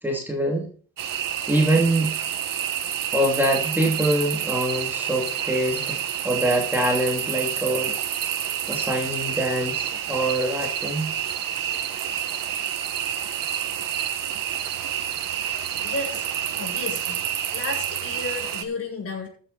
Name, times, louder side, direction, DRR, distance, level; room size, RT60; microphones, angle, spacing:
voice 1, 0.0-0.7 1.5-2.1 3.1-6.0 6.2-7.9 8.7-11.1, right 1 dB, 5° right, -1 dB, 2.8 m, -24 dB
sound 1, 1.0-18.6, right 10 dB, 65° right, 1.9 m, -28 dB
voice 2, 15.8-16.3 16.5-17.2 17.5-19.3, left 3 dB, 40° left, 1 dB, 7.8 m, -32 dB
15.0 x 8.5 x 4.3 m, 0.43 s
cardioid pair, 130°, 36 cm